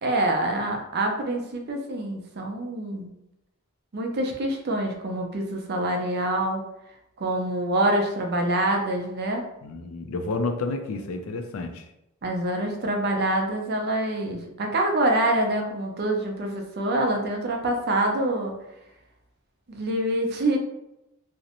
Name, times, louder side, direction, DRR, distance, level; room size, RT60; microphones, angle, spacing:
voice 1, 0.0-3.1 3.9-6.6 7.2-9.4 12.2-18.5 19.7-20.6, right 1 dB, 50° right, 2 dB, 0.4 m, -26 dB
voice 2, 9.6-11.9, left 3 dB, 70° left, 5 dB, 0.4 m, -30 dB
2.5 x 2.0 x 2.8 m, 0.86 s
head